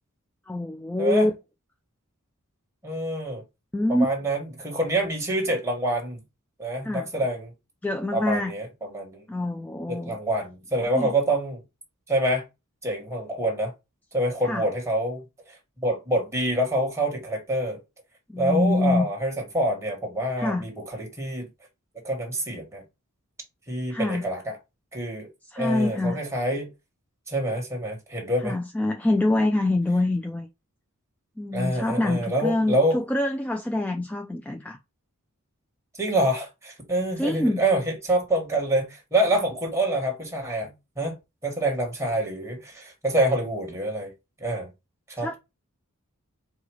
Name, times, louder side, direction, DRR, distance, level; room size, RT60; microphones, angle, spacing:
voice 1, 0.5-1.3 3.7-4.1 6.8-7.1 7.8-8.5 9.3-10.2 10.9-11.1 14.4-14.6 18.3-19.1 20.4-20.7 23.9-24.3 25.5-26.2 28.4-30.5 31.4-34.8 37.2-37.6 45.2-45.3, left 1 dB, 5° left, 0.3 m, -25 dB
voice 2, 2.8-3.4 3.9-6.2 6.6-7.5 8.1-9.2 9.9-11.6 12.1-12.4 12.8-13.7 14.1-15.6 15.8-17.8 18.4-21.5 22.0-22.8 23.7-24.5 24.9-25.3 25.6-26.7 27.3-28.5 31.5-33.0 36.0-41.2 41.4-44.1 44.4-44.7 45.1-45.4, right 1 dB, 15° right, 1.7 m, -26 dB
5.0 x 2.3 x 4.7 m
head